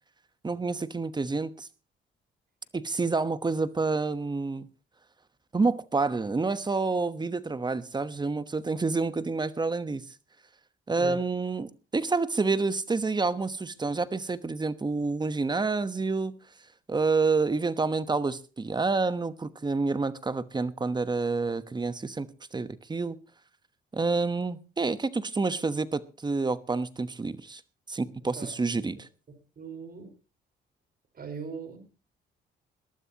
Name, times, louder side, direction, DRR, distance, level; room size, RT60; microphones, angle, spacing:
voice 1, 0.4-1.7 2.7-4.7 5.5-10.0 10.9-16.4 16.9-23.2 23.9-27.6 27.9-29.1, right 3 dB, 20° right, 1.1 m, -28 dB
voice 2, 29.6-30.1 31.1-31.8, right 5 dB, 50° right, 4.7 m, -39 dB
21.5 x 12.5 x 2.9 m
cardioid pair, 90°, 20 cm